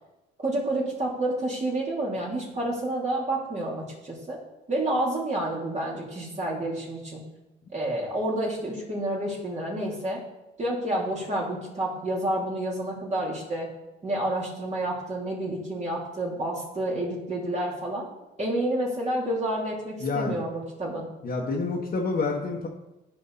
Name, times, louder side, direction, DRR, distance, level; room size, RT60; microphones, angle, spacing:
voice 1, 0.4-4.4 4.7-7.2 7.7-10.2 10.6-13.7 14.0-18.1 18.4-21.1, right 1 dB, 35° right, -4 dB, 3.0 m, -29 dB
voice 2, 20.0-20.4 21.2-22.7, left 3 dB, 50° left, -3 dB, 1.5 m, -28 dB
14.0 x 5.1 x 4.1 m, 0.96 s
cardioid pair, 90°, 20 cm